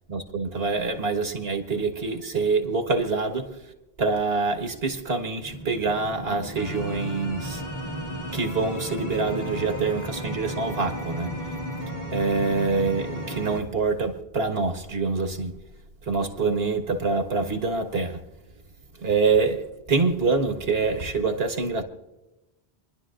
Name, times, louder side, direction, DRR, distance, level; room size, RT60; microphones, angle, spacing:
voice 1, 0.1-3.7 4.0-7.6 8.3-11.4 12.1-15.5 16.0-18.2 19.0-21.8, right 4 dB, 65° right, 1.6 m, -25 dB
sound 1, 5.4-13.6, equal, 45° left, 1.9 m, -34 dB
28.0 x 11.0 x 2.5 m
omnidirectional pair, 1.1 m